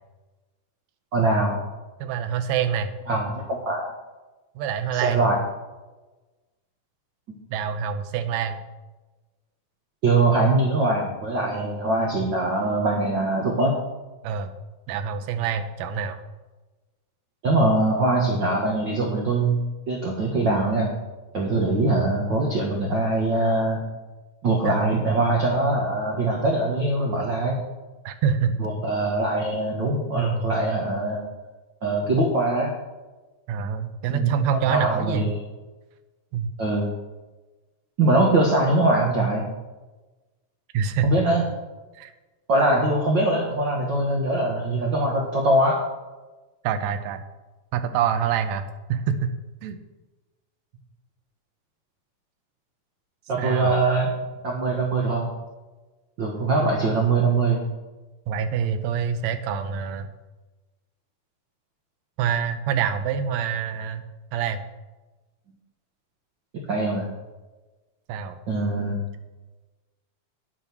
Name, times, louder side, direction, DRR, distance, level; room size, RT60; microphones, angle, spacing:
voice 1, 1.1-1.6 3.1-3.9 4.9-5.4 10.0-13.7 17.4-19.6 19.9-20.9 21.3-23.8 24.4-27.6 28.6-31.2 31.8-32.7 34.1-34.3 34.7-35.4 36.6-36.9 38.0-39.5 41.0-41.4 42.5-45.8 53.3-54.1 54.4-55.3 56.2-57.6 66.6-67.1 68.5-69.0, right 2 dB, 50° right, -1 dB, 1.4 m, -22 dB
voice 2, 2.0-2.9 4.6-5.2 7.5-8.6 14.2-14.5 14.9-16.2 24.6-25.0 28.0-28.5 30.2-30.5 33.5-35.3 36.3-36.6 40.7-41.1 41.9-42.1 46.6-47.2 47.7-49.3 49.6-49.8 53.4-53.8 58.3-60.1 62.2-64.0 64.3-64.6 68.1-68.4, right 7 dB, 75° right, 8 dB, 1.7 m, -26 dB
9.8 x 7.0 x 6.0 m, 1.2 s
omnidirectional pair, 3.9 m